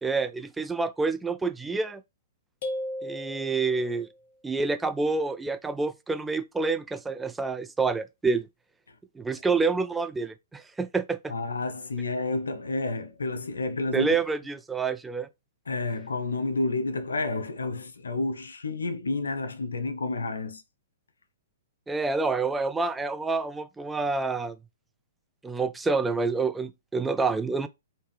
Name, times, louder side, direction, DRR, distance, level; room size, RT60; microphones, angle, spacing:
voice 1, 0.0-2.0 3.0-4.1 4.4-8.5 9.2-11.3 13.9-15.3 21.9-24.6 25.4-27.7, right 4 dB, 10° right, 0.3 m, -28 dB
sound 1, 2.6-4.1, left 1 dB, 50° left, 1.1 m, -35 dB
voice 2, 11.3-14.1 15.7-20.6, left 3 dB, 85° left, 0.5 m, -30 dB
3.2 x 2.7 x 3.4 m
hypercardioid pair, 125°, 0 cm